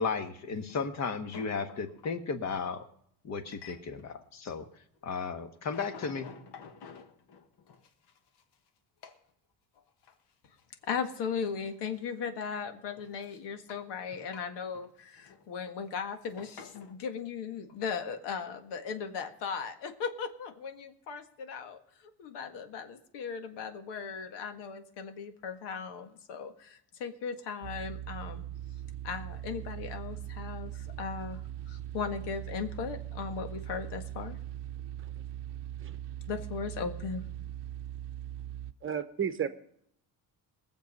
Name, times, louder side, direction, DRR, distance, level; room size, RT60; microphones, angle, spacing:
voice 1, 0.0-2.8 3.2-4.7 5.0-6.3, left 5 dB, 40° left, 8 dB, 1.4 m, -34 dB
sound 1, 0.6-2.2 3.5-4.2 4.4-5.2 5.4-8.7 9.0-9.3 9.7-10.3 10.6-10.7 10.9-12.0 12.4-13.9 14.2-15.5 15.8-17.0 17.7-17.9 19.2-19.3, left 6 dB, 70° left, 1.6 m, -52 dB
voice 2, 10.8-28.4 29.0-34.4 36.3-37.2, left 6 dB, 85° left, 7 dB, 1.7 m, -37 dB
sound 2, 27.6-38.7, right 12 dB, 85° right, 0.8 m, -40 dB
voice 3, 38.8-39.5, right 8 dB, 30° right, 11 dB, 0.9 m, -33 dB
20.5 x 7.3 x 5.4 m, 0.67 s
cardioid pair, 150°, 40 cm